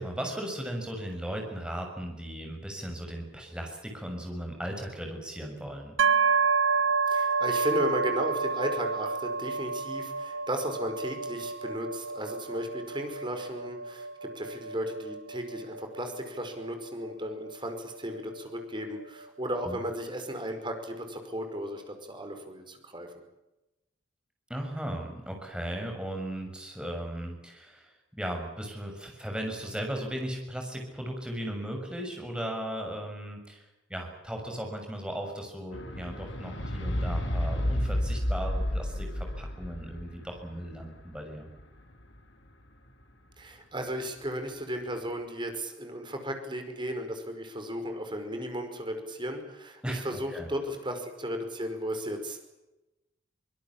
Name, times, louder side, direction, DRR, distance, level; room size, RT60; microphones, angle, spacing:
voice 1, 0.0-6.0 19.6-19.8 24.5-41.5 49.8-50.5, right 1 dB, 5° right, 2 dB, 6.7 m, -37 dB
sound 1, 6.0-19.7, right 4 dB, 85° right, 1.3 m, -30 dB
voice 2, 7.1-23.1 43.4-52.5, equal, 25° right, 6 dB, 5.2 m, -35 dB
sound 2, 35.7-42.2 43.0-43.1, left 1 dB, 70° left, 4.0 m, -31 dB
24.5 x 21.0 x 8.6 m, 0.99 s
head